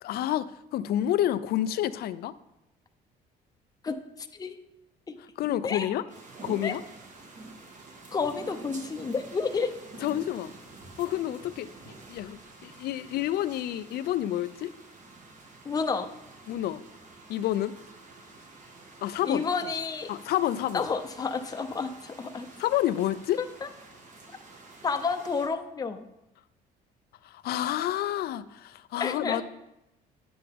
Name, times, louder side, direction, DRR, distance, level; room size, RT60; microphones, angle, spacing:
voice 1, 0.0-2.3 5.4-6.1 6.4-6.8 10.0-10.5 11.0-11.7 12.1-14.7 16.5-16.8 17.3-17.7 19.0-19.4 20.1-20.9 22.6-23.4 27.2-29.4, left 12 dB, 65° left, 15 dB, 0.5 m, -29 dB
sound 1, 6.1-25.5, right 3 dB, 50° right, 1.7 m, -48 dB
voice 2, 8.1-9.7 15.6-16.1 19.2-20.1 20.7-22.5 23.6-23.7 24.8-26.0 29.0-29.4, left 5 dB, 20° left, 6 dB, 0.7 m, -30 dB
10.0 x 7.8 x 3.5 m, 0.90 s
cardioid pair, 110°, 17 cm